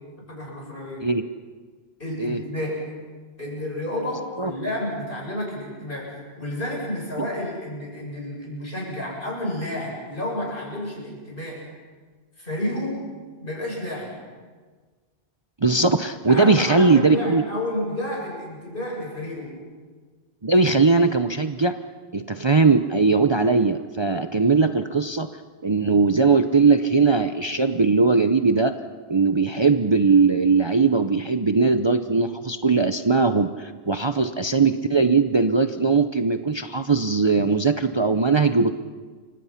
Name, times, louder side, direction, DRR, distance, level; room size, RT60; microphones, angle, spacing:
voice 1, 0.3-1.0 2.0-3.0 3.4-11.7 12.4-13.1 13.4-14.2 16.3-19.6, left 1 dB, 55° left, -2 dB, 8.1 m, -30 dB
voice 2, 15.6-17.4 20.4-21.8 22.1-25.3 25.6-28.7 29.1-38.8, right 4 dB, 30° right, 8 dB, 0.7 m, -20 dB
29.5 x 25.0 x 5.8 m, 1.5 s
omnidirectional pair, 1.1 m